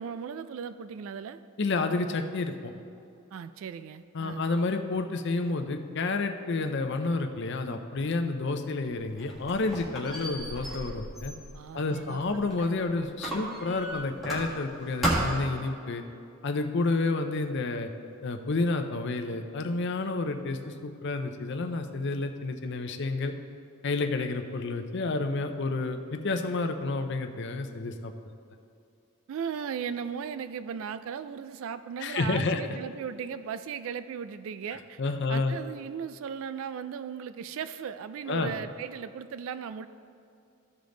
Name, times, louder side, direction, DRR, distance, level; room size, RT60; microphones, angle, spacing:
voice 1, 0.0-1.4 3.3-4.5 11.5-12.4 29.3-35.0 35.3-39.9, right 7 dB, 65° right, 13 dB, 0.3 m, -37 dB
voice 2, 1.6-2.7 4.1-11.3 11.7-16.0 16.4-17.9 18.2-23.3 23.8-28.1 32.0-32.8 35.0-35.6 38.3-38.6, left 3 dB, 55° left, 6 dB, 0.5 m, -30 dB
Squeak, 8.9-12.7 13.2-14.7 15.0-15.6, right 1 dB, ahead, 1.8 m, -33 dB
14.5 x 5.2 x 3.8 m, 2.5 s
head